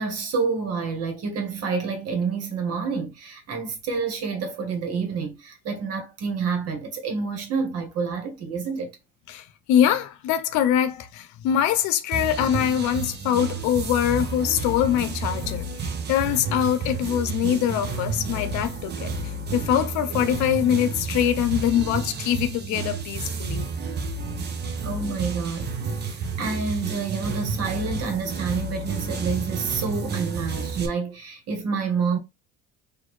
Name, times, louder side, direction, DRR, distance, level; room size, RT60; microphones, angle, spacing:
voice 1, 0.0-8.9 24.8-32.2, right 5 dB, 55° right, 1.4 m, -28 dB
voice 2, 9.3-19.1 19.5-23.7, left 10 dB, 80° left, 0.7 m, -23 dB
sound 1, 12.1-30.9, right 4 dB, 35° right, 0.8 m, -31 dB
4.3 x 2.6 x 3.1 m
cardioid pair, 125°, 29 cm